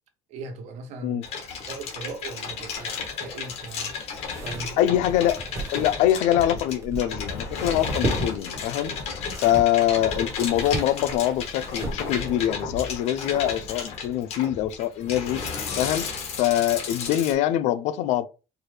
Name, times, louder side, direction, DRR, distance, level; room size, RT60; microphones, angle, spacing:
voice 1, 0.3-3.9 4.3-4.9, right 4 dB, 70° right, 0.9 m, -39 dB
sound 1, 1.2-17.3, left 5 dB, 60° left, 1.3 m, -33 dB
sound 2, 4.2-12.5, right 2 dB, 25° right, 1.2 m, -36 dB
voice 2, 4.8-5.4 5.7-8.9 9.4-15.4 15.8-16.0 16.4-18.3, left 12 dB, 85° left, 0.5 m, -24 dB
4.7 x 2.2 x 3.1 m
cardioid pair, 155°, 12 cm